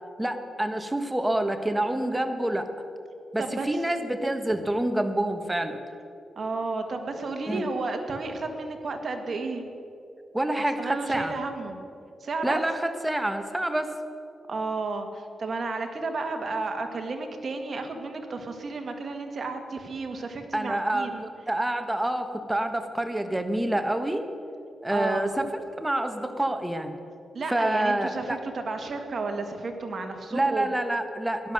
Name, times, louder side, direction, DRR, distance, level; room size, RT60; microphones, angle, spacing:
voice 1, 0.2-2.7 3.3-5.8 7.5-7.7 10.3-11.3 12.4-13.9 20.5-24.3 24.8-25.4 25.8-27.0 27.5-28.4 30.3-31.5, right 1 dB, 10° right, 7 dB, 1.4 m, -27 dB
voice 2, 6.4-9.6 10.6-11.8 12.2-12.6 14.5-21.3 24.9-25.3 27.3-30.7, right 3 dB, 55° right, 5 dB, 2.0 m, -32 dB
16.5 x 11.5 x 6.6 m, 2.7 s
cardioid pair, 80°, 0 cm